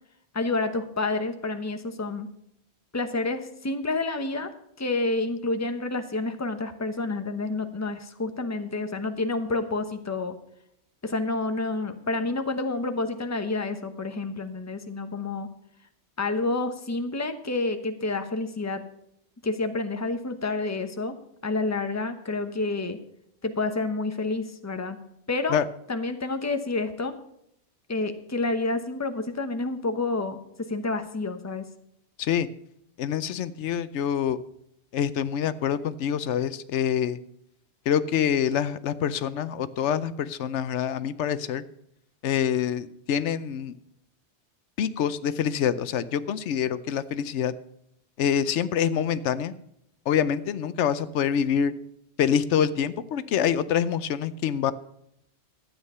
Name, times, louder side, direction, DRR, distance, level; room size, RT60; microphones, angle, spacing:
voice 1, 0.3-2.3 2.9-4.5 4.8-10.4 11.0-15.5 16.2-18.9 19.4-21.2 21.4-23.0 23.4-25.0 25.3-25.6 25.9-27.2 27.9-31.6, left 3 dB, 15° left, 8 dB, 0.9 m, -29 dB
voice 2, 33.0-34.4 34.9-37.2 37.9-41.6 42.2-43.7 44.8-47.5 48.2-49.5 50.1-51.7 52.2-54.7, left 8 dB, 85° left, 15 dB, 1.0 m, -26 dB
12.5 x 8.9 x 5.5 m, 0.75 s
omnidirectional pair, 1.2 m